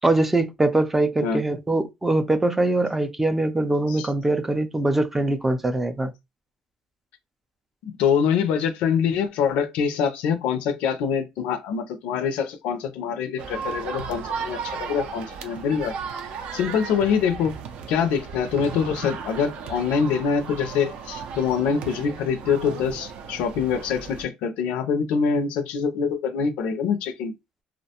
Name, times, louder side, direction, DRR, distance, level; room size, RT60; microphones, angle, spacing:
voice 1, 0.0-6.1, right 2 dB, 10° right, 0.3 m, -22 dB
voice 2, 7.8-16.0 16.5-17.5 17.9-27.3, left 6 dB, 85° left, 0.4 m, -24 dB
sound 1, 13.4-24.2, right 6 dB, 75° right, 0.4 m, -35 dB
2.3 x 2.1 x 2.8 m
cardioid pair, 120°, 2 cm